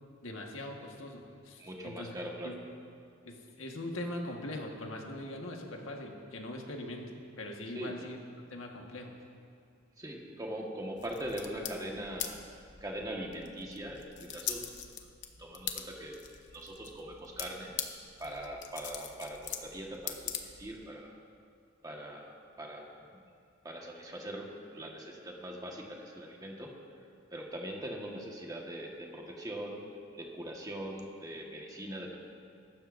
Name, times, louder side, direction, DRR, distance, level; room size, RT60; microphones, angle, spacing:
voice 1, 0.2-2.1 2.4-2.6 3.2-8.2 8.5-9.1, left 1 dB, 90° left, 1 dB, 1.5 m, -41 dB
voice 2, 1.6-2.6 7.7-8.1 10.0-12.4 12.8-14.6 15.4-16.2 16.5-17.7 18.2-21.1 21.8-22.8 23.6-26.7 27.3-29.9 30.1-32.2, right 1 dB, 20° right, -1 dB, 1.5 m, -41 dB
sound 1, 11.0-20.9, left 9 dB, 65° left, 0.9 m, -43 dB
21.5 x 12.0 x 2.6 m, 2.3 s
head